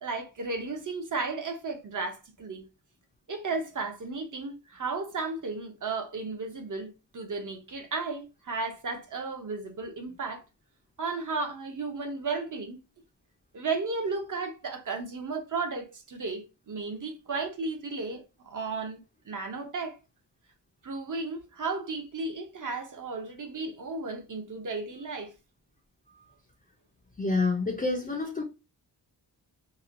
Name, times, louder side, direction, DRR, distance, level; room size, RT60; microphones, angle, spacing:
voice 1, 0.0-2.6 3.3-10.4 11.0-12.8 13.5-20.0 20.8-25.3, right 3 dB, 45° right, 0.6 m, -34 dB
voice 2, 27.2-28.4, left 3 dB, 20° left, 0.4 m, -28 dB
3.0 x 2.1 x 2.5 m
wide cardioid pair, 165°, 43 cm